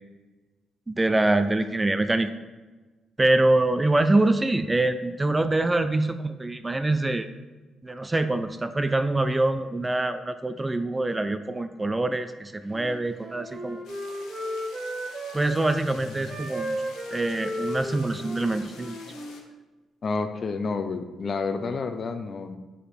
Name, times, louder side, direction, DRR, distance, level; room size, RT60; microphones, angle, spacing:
voice 1, 0.9-2.3 3.2-7.3 7.8-13.8 15.3-16.8 17.1-19.0, right 2 dB, 15° right, 10 dB, 0.4 m, -24 dB
Wind instrument woodwind instrument, 12.7-15.8 16.3-19.4, equal, 35° right, 1.0 m, -35 dB
sound 1, 13.8-19.4, left 5 dB, 85° left, 1.0 m, -48 dB
voice 2, 20.0-22.6, left 4 dB, 45° left, 8 dB, 0.6 m, -29 dB
5.1 x 4.9 x 4.4 m, 1.2 s
cardioid pair, 90°, 0 cm